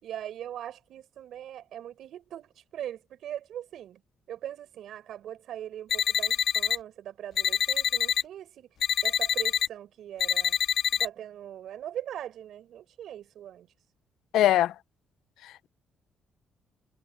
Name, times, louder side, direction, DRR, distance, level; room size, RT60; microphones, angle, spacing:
voice 1, 0.0-4.0 4.3-8.7 9.0-10.6 10.9-13.7, right 11 dB, 75° right, 6.0 m, -40 dB
sound 1, 5.9-6.8 7.4-8.2 8.8-9.7 10.2-11.1, left 8 dB, 65° left, 1.6 m, -26 dB
voice 2, 14.3-14.8 15.4-15.7, left 13 dB, 85° left, 0.6 m, -23 dB
cardioid pair, 90°, 0 cm